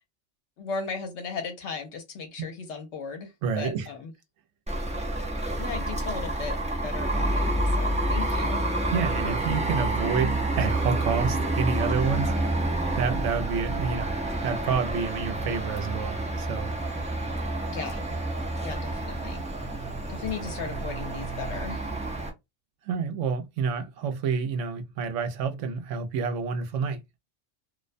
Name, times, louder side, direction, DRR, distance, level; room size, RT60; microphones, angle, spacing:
voice 1, 0.6-4.1 5.6-6.6 6.8-8.6 17.7-18.1 18.6-19.4 20.1-21.8, left 5 dB, 70° left, 0.9 m, -36 dB
voice 2, 3.4-3.9 8.9-12.6 13.0-14.1 14.4-16.7 22.8-27.0, right 5 dB, 80° right, 0.9 m, -29 dB
sound 1, 4.7-22.3, right 1 dB, 10° right, 0.3 m, -28 dB
2.4 x 2.1 x 2.5 m
omnidirectional pair, 1.3 m